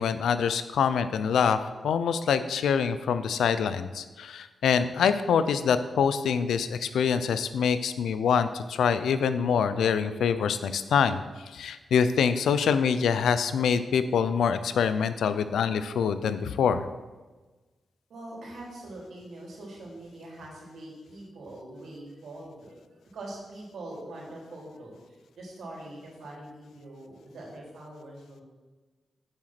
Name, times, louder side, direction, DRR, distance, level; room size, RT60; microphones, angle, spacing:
voice 1, 0.0-11.2 11.5-16.9, left 7 dB, 90° left, 12 dB, 0.5 m, -25 dB
voice 2, 18.1-22.8 23.1-28.4, right 1 dB, 80° right, -3 dB, 3.5 m, -43 dB
7.8 x 7.3 x 6.0 m, 1.2 s
cardioid pair, 60°, 0 cm